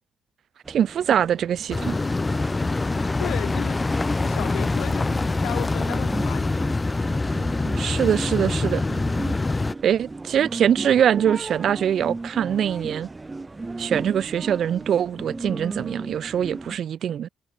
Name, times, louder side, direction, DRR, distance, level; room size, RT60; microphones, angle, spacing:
sound 1, 0.6-16.8, right 3 dB, 20° right, 0.7 m, -36 dB
voice 1, 0.7-2.0 7.8-8.8 9.8-13.1 13.8-17.3, right 9 dB, 65° right, 0.5 m, -23 dB
sound 2, 1.7-9.7, left 3 dB, 20° left, 0.5 m, -25 dB
voice 2, 3.2-3.9 4.2-6.7, left 14 dB, 85° left, 2.2 m, -35 dB
cardioid pair, 90°, 0 cm